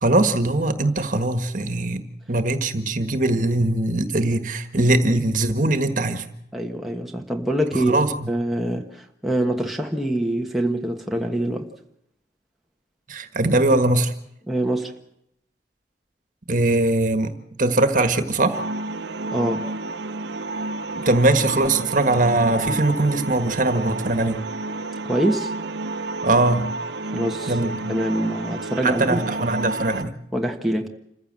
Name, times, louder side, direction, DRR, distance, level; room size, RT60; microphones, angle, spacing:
voice 1, 0.0-2.0 2.3-6.2 7.7-8.1 13.1-14.1 16.5-18.6 21.0-24.5 26.2-26.7 27.5-27.7 28.8-30.1, right 2 dB, 45° right, 1.6 m, -21 dB
voice 2, 6.5-11.7 14.5-14.9 19.3-19.7 25.0-25.5 27.0-27.6 27.9-29.5 30.3-30.9, right 1 dB, ahead, 1.4 m, -25 dB
sound 1, 18.5-30.0, right 2 dB, 85° right, 0.8 m, -30 dB
27.0 x 15.0 x 7.6 m
head